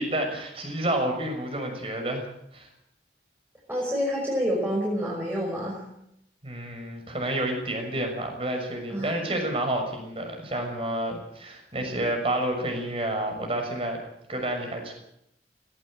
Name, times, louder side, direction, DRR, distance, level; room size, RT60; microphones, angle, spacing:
voice 1, 0.0-2.3 2.5-2.7 6.4-14.0 14.3-14.9, right 1 dB, 35° right, 3 dB, 6.4 m, -29 dB
voice 2, 3.7-5.9 8.9-9.1, equal, 10° right, -3 dB, 5.5 m, -28 dB
18.0 x 17.0 x 9.0 m, 0.78 s
head